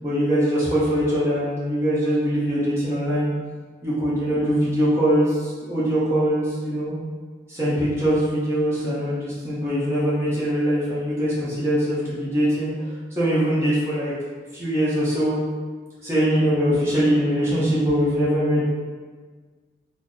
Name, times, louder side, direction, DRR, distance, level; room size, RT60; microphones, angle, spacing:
voice 1, 0.0-3.3 3.8-6.9 7.5-12.7 13.2-14.1 14.5-15.4 16.0-18.6, equal, 15° right, -10 dB, 0.9 m, -22 dB
3.7 x 2.1 x 3.7 m, 1.5 s
head